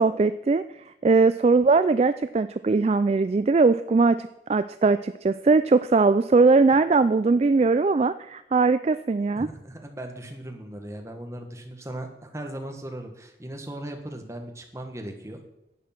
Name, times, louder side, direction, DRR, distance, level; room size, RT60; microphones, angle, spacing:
voice 1, 0.0-9.5, right 4 dB, 35° right, 13 dB, 0.3 m, -20 dB
voice 2, 9.3-15.4, right 1 dB, 15° right, 3 dB, 1.5 m, -38 dB
11.0 x 8.4 x 5.9 m, 0.86 s
head